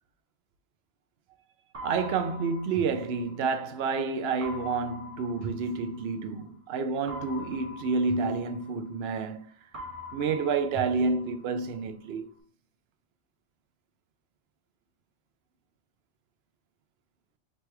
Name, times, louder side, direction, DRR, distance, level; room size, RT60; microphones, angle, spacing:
sound 1, 1.7-3.8 4.4-6.5 7.1-9.4 9.7-11.8, equal, 35° right, 0.7 m, -43 dB
voice 1, 1.8-9.5 10.1-12.3, right 4 dB, 65° right, 0.8 m, -29 dB
3.4 x 3.1 x 4.5 m
omnidirectional pair, 1.2 m